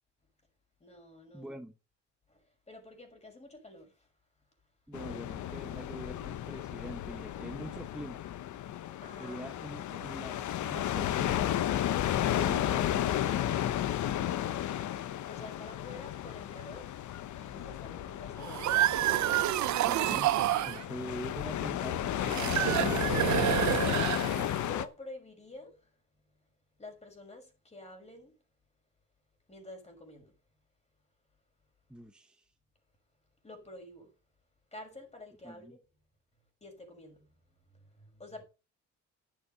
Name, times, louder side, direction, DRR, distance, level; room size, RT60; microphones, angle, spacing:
voice 1, 0.8-1.6 2.3-4.1 9.0-10.2 15.3-18.9 20.7-21.0 23.8-26.5 26.8-28.4 29.5-30.4 33.4-34.1 34.7-35.7 36.6-38.4, left 2 dB, 20° left, 6.0 m, -50 dB
voice 2, 1.3-1.7 4.9-8.2 9.2-11.5 12.3-13.7 19.8-20.4 20.7-23.3 31.9-32.4 35.4-35.8, right 1 dB, 5° right, 1.0 m, -44 dB
sound 1, 4.9-24.8, left 11 dB, 75° left, 1.0 m, -33 dB
sound 2, 18.4-20.8 22.2-24.7, right 14 dB, 70° right, 0.7 m, -28 dB
10.5 x 7.6 x 6.7 m
cardioid pair, 90°, 30 cm